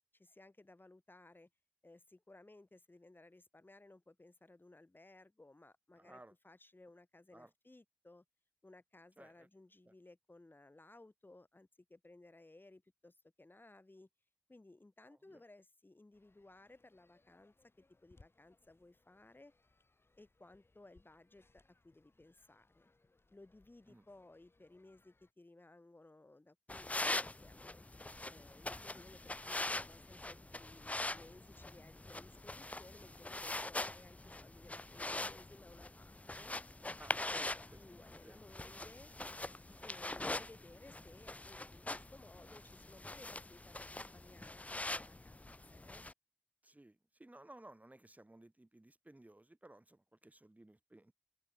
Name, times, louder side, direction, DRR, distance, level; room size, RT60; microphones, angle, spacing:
voice 1, 0.1-1.5 1.8-8.2 8.6-14.1 14.5-17.5 18.0-19.5 20.2-22.9 23.3-27.8 28.3-36.6 37.4-39.1 39.8-46.1, left 2 dB, 60° left, 4.6 m, -60 dB
voice 2, 6.0-6.3 7.3-7.5 9.2-9.5 9.8-9.9 15.1-15.4 23.9-24.0 37.0-38.4 40.4-40.5 46.6-51.1, right 1 dB, 40° right, 4.6 m, -59 dB
sound 1, 16.1-25.3, left 2 dB, 85° left, 6.0 m, -71 dB
sound 2, 26.7-46.1, left 2 dB, 35° left, 0.4 m, -43 dB
wide cardioid pair, 45°, 4 cm